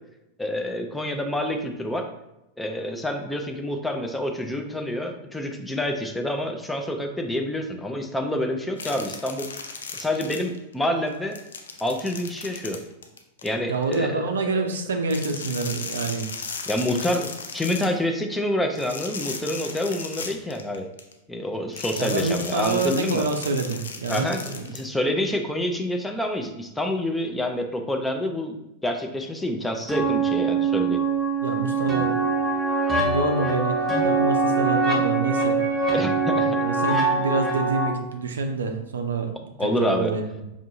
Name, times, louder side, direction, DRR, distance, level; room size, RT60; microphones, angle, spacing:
voice 1, 0.4-2.0 2.6-9.5 9.9-11.4 11.8-12.8 13.4-14.7 16.7-20.9 21.3-23.3 24.1-24.4 24.7-28.6 28.8-31.0 35.9-36.6 39.6-40.1, left 1 dB, 5° left, 3 dB, 0.4 m, -27 dB
sound 1, 8.8-10.7 11.1-14.0 15.0-18.0 18.7-21.1 21.7-24.8, left 5 dB, 65° left, 0.4 m, -36 dB
voice 2, 13.7-16.3 22.0-24.7 31.4-32.3 33.0-35.6 36.6-40.2, right 3 dB, 70° right, 5 dB, 0.4 m, -27 dB
sound 2, 29.9-37.9, right 4 dB, 10° right, 0.9 m, -23 dB
4.8 x 2.6 x 2.6 m, 0.90 s
figure-of-eight pair, 90°, 0 cm